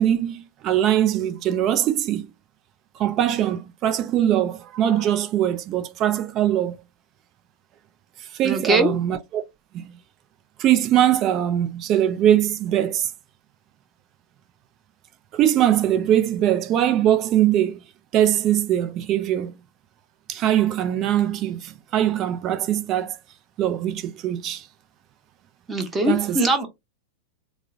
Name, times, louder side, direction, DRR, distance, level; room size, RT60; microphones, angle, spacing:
voice 1, 0.0-2.3 3.0-6.8 8.3-9.4 9.7-9.8 10.6-13.1 15.3-17.8 18.1-19.5 20.3-23.2 23.6-24.6 26.1-26.4, right 11 dB, 35° right, 0.4 m, -21 dB
voice 2, 8.4-8.9 25.7-26.7, right 2 dB, 15° right, 0.8 m, -21 dB
3.7 x 2.0 x 2.5 m
figure-of-eight pair, 90°, 0 cm